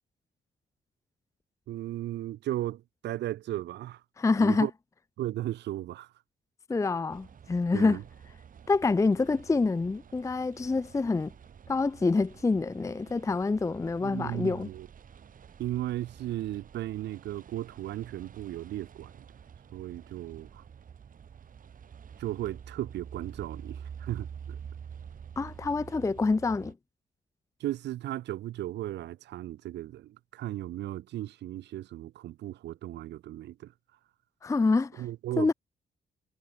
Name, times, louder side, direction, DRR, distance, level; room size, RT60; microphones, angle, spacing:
voice 1, 1.7-4.0 4.4-4.7 5.2-6.1 7.7-8.0 14.0-14.9 15.6-19.2 19.7-20.6 22.2-24.6 27.6-33.7 35.0-35.5, right 14 dB, 90° right, 0.5 m, -36 dB
voice 2, 4.2-4.7 6.7-8.0 8.7-11.3 11.7-14.7 25.4-26.7 34.4-35.0 35.4-35.5, left 3 dB, 20° left, 0.5 m, -26 dB
sound 1, 7.1-26.7, right 7 dB, 50° right, 1.7 m, -48 dB
cardioid pair, 115°, 17 cm